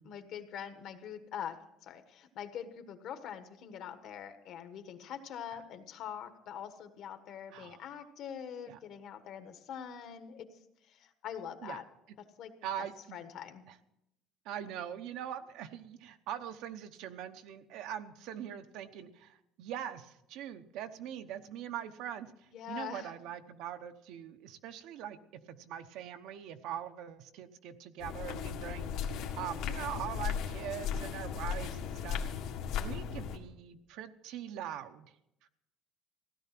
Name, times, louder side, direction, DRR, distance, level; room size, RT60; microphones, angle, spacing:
voice 1, 0.0-10.5 10.9-11.8 12.4-12.5 12.8-12.9 13.1-13.6 22.5-23.1, left 8 dB, 50° left, 8 dB, 1.3 m, -44 dB
voice 2, 7.5-7.8 8.7-8.8 11.6-11.8 12.6-13.2 14.4-28.9 29.4-32.2 32.8-35.1 35.4-35.5, right 10 dB, 65° right, 8 dB, 0.9 m, -42 dB
sound 1, 28.0-33.4, left 7 dB, 70° left, 1.7 m, -36 dB
16.0 x 12.0 x 6.0 m, 0.83 s
cardioid pair, 175°, 0 cm